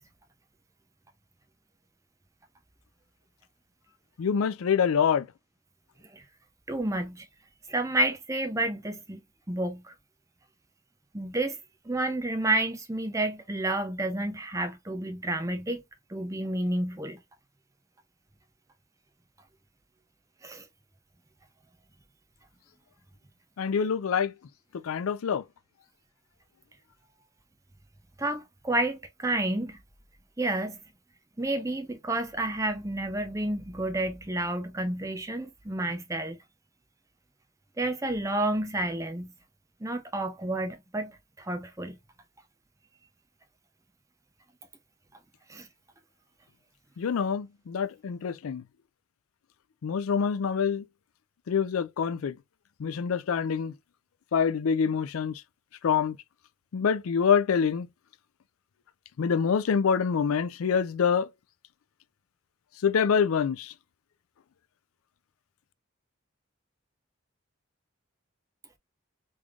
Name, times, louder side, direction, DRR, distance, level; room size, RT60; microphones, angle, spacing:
voice 1, 4.2-5.3 23.6-24.3 24.7-25.4 47.0-48.6 49.8-50.8 51.5-52.4 52.8-53.7 54.3-55.4 55.8-56.2 56.7-57.9 59.2-61.3 62.8-63.7, left 6 dB, 85° left, 0.4 m, -26 dB
voice 2, 6.7-7.3 7.7-9.2 9.5-9.9 11.1-11.6 11.9-15.8 16.1-17.2 20.4-20.6 28.2-29.8 30.4-30.8 31.4-36.4 37.8-39.3 39.8-42.0 45.5-45.7, right 1 dB, 15° right, 0.5 m, -30 dB
3.4 x 3.2 x 2.4 m
head